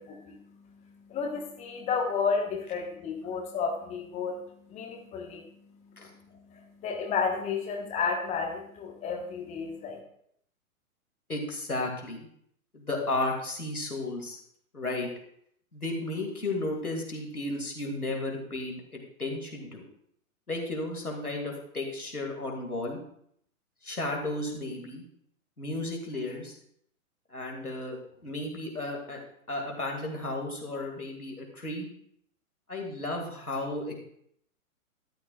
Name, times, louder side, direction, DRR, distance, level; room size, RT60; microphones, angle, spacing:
voice 1, 0.0-10.0, left 5 dB, 15° left, 2 dB, 1.1 m, -33 dB
voice 2, 11.3-12.3 12.7-14.4 14.7-15.1 15.7-19.8 20.5-23.0 23.8-25.0 25.6-26.5 27.3-29.2 29.5-31.9 32.7-34.0, left 2 dB, 85° left, 1 dB, 2.2 m, -34 dB
13.0 x 9.7 x 2.3 m, 0.69 s
figure-of-eight pair, 115°, 43 cm